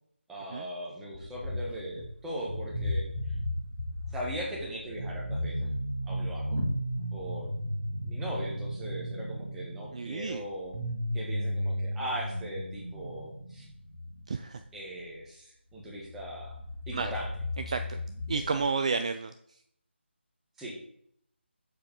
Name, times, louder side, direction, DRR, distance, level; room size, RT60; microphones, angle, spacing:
voice 1, 0.3-3.4 4.1-5.7 6.1-6.6 7.1-7.5 8.0-10.7 11.1-13.6 14.7-16.6 16.9-17.3 18.5-18.6 20.6-20.7, right 1 dB, 5° right, -4 dB, 1.2 m, -39 dB
sound 1, 1.1-2.1 2.4-14.5 15.7-15.8 16.0-18.7, equal, 50° right, 1.7 m, -35 dB
voice 2, 9.9-10.4 14.3-14.6 16.9-17.1 17.7-18.0 18.3-19.6, right 4 dB, 35° right, 8 dB, 0.3 m, -31 dB
6.8 x 4.6 x 5.3 m, 0.68 s
figure-of-eight pair, 160°, 7 cm